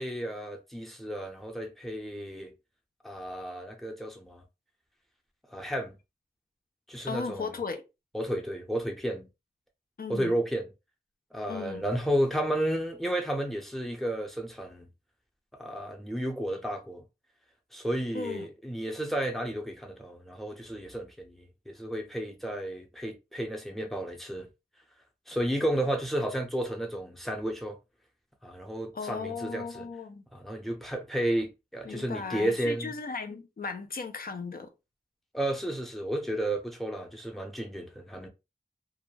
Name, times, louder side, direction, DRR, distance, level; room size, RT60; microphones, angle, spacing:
voice 1, 0.0-2.5 3.0-4.4 5.5-5.9 6.9-7.5 8.1-9.3 10.1-10.7 11.3-14.8 15.6-17.0 17.7-24.5 25.3-27.8 28.4-29.9 30.3-32.9 35.3-38.3, right 1 dB, ahead, 0.6 m, -32 dB
voice 2, 7.1-7.8 10.0-10.3 11.5-11.8 18.1-18.5 28.9-30.2 31.9-34.7, left 4 dB, 65° left, 0.5 m, -36 dB
2.3 x 2.1 x 3.2 m
wide cardioid pair, 75°, 16 cm